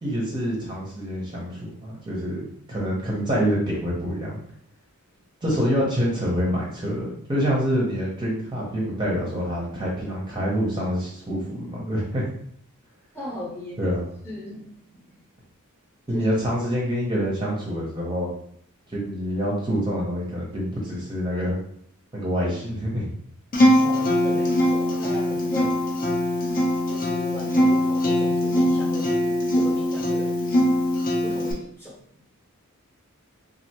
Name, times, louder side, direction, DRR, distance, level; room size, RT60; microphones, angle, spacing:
voice 1, 0.0-2.4 2.7-4.4 5.4-12.2 13.8-14.0 16.1-18.3 18.9-21.6 22.1-23.1, equal, 20° right, -4 dB, 0.7 m, -26 dB
voice 2, 13.1-14.0 14.2-15.2 16.1-16.3 23.7-25.8 26.9-30.3 31.2-31.9, left 1 dB, 10° left, -6 dB, 0.9 m, -37 dB
Acoustic guitar, 23.5-31.5, equal, 40° left, 0.6 m, -22 dB
3.2 x 2.5 x 2.9 m, 0.65 s
head